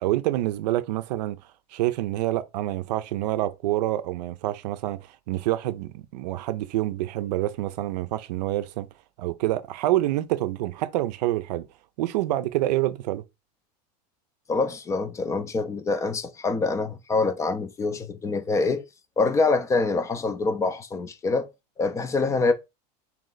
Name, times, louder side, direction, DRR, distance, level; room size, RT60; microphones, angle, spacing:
voice 1, 0.0-1.4 1.7-8.9 9.2-11.7 12.0-13.2, right 15 dB, 85° right, 0.5 m, -27 dB
voice 2, 14.5-18.8 19.2-21.5 21.8-22.5, left 3 dB, 15° left, 0.3 m, -25 dB
3.2 x 2.9 x 3.8 m
supercardioid pair, 150°, 20 cm